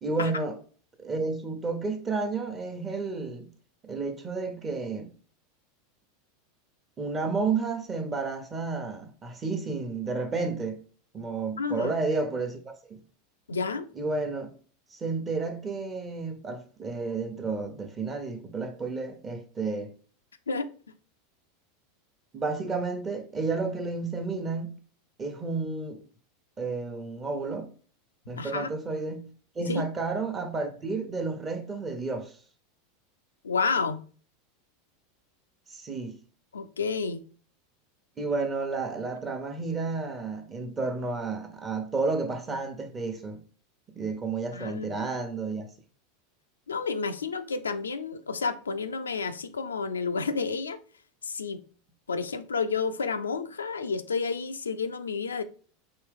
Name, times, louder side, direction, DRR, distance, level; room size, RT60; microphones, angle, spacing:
voice 1, 0.0-0.6 1.0-3.5 3.8-5.1 7.0-10.8 11.1-13.0 14.0-14.5 14.9-19.9 22.3-24.8 25.2-26.0 26.6-27.7 28.3-29.3 29.5-32.3 35.7-36.2 38.2-43.4 43.9-45.7, right 4 dB, 25° right, 0.9 m, -31 dB
voice 2, 11.6-11.9 13.5-13.9 20.5-20.7 28.3-28.7 29.7-29.8 33.4-34.0 36.5-37.2 44.5-45.1 46.7-50.8 51.2-51.6 52.1-55.4, left 4 dB, 90° left, 0.4 m, -30 dB
4.5 x 3.0 x 3.5 m
hypercardioid pair, 90°, 0 cm